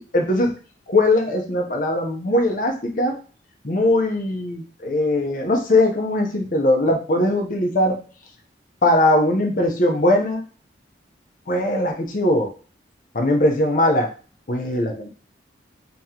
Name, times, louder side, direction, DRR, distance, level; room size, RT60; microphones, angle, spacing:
voice 1, 0.1-0.5 0.9-3.2 3.6-8.0 8.8-10.4 11.5-12.5 13.1-14.1 14.5-15.1, left 1 dB, 50° left, 3 dB, 0.7 m, -20 dB
3.0 x 2.9 x 3.6 m, 0.37 s
head